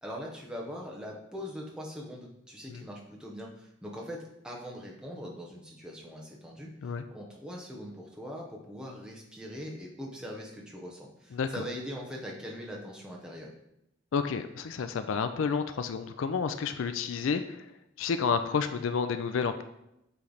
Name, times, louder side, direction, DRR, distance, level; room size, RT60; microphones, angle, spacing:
voice 1, 0.0-13.5, equal, 5° right, -2 dB, 0.9 m, -42 dB
voice 2, 11.3-11.6 14.1-17.7 18.0-19.6, left 5 dB, 70° left, 9 dB, 0.4 m, -30 dB
8.4 x 3.3 x 3.9 m, 0.84 s
head